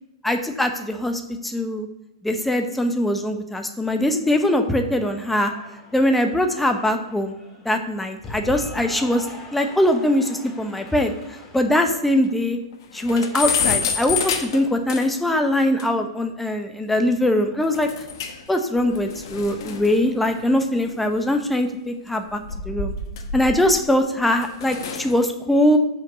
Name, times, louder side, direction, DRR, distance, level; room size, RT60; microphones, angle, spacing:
voice 1, 0.2-1.9 2.2-5.5 5.9-7.4 7.6-9.3 9.5-11.1 11.5-12.6 12.9-17.9 18.5-22.9 23.3-25.8, left 1 dB, 5° left, 5 dB, 0.8 m, -22 dB
Cheering / Applause, 4.0-11.7, left 1 dB, 20° left, 1.8 m, -42 dB
sound 1, 11.0-11.1 11.4-11.5 11.9-12.0 12.3-12.4 12.7-15.3 15.8-15.9 17.7-18.5 18.8-21.4 22.2-23.9 24.3-25.1, left 6 dB, 65° left, 1.0 m, -29 dB
6.1 x 4.5 x 6.3 m, 0.90 s
hypercardioid pair, 115°, 3 cm